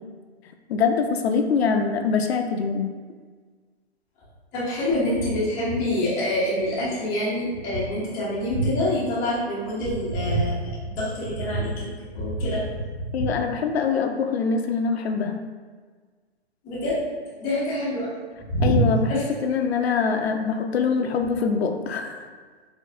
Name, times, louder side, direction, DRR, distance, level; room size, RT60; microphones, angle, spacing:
voice 1, 0.7-2.9 13.1-15.4 18.6-22.3, left 5 dB, 70° left, 5 dB, 0.5 m, -24 dB
voice 2, 4.5-12.8 16.6-17.0 17.4-18.1 18.5-18.8 19.1-19.2, equal, 10° left, -9 dB, 0.4 m, -25 dB
4.3 x 2.6 x 2.4 m, 1.5 s
hypercardioid pair, 155°, 33 cm